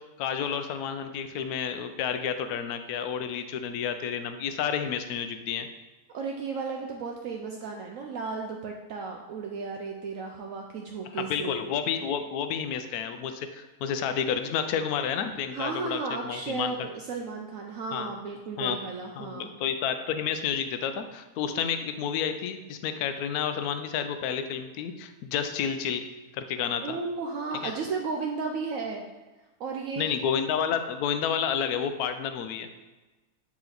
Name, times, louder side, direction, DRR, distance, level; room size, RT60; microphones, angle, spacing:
voice 1, 0.2-5.7 11.1-16.9 17.9-18.1 18.6-18.8 19.2-26.0 26.3-27.0 27.6-27.7 30.0-32.7, left 8 dB, 75° left, 9 dB, 1.0 m, -30 dB
voice 2, 6.1-11.6 15.5-19.5 26.8-29.0 29.6-30.1, right 4 dB, 70° right, 1 dB, 0.8 m, -34 dB
8.8 x 3.1 x 3.9 m, 1.2 s
omnidirectional pair, 1.7 m